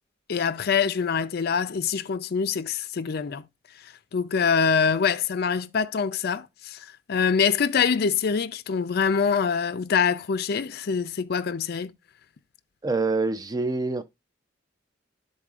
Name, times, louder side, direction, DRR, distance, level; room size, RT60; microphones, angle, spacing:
voice 1, 0.3-3.5 4.1-11.9, left 6 dB, 55° left, 0.5 m, -25 dB
voice 2, 12.8-14.0, right 3 dB, 20° right, 0.6 m, -25 dB
12.0 x 4.0 x 2.4 m
head